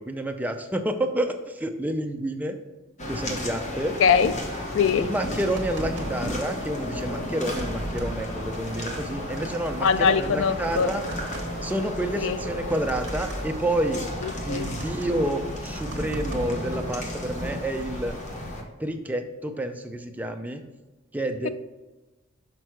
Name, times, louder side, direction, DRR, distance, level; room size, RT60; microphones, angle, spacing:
voice 1, 0.0-2.6 3.1-4.0 5.0-11.0 11.6-14.0 14.5-18.1 18.8-20.6 21.1-21.5, right 1 dB, 10° right, 5 dB, 0.5 m, -29 dB
sound 1, 3.0-18.6, left 1 dB, 35° left, 1.1 m, -34 dB
voice 2, 4.0-4.3 4.7-5.1 9.8-10.9 12.2-12.4 14.2-14.7, left 6 dB, 70° left, 14 dB, 0.4 m, -22 dB
sound 2, 4.7-17.6, equal, 60° right, 1.3 m, -36 dB
6.0 x 5.5 x 4.6 m, 1.1 s
head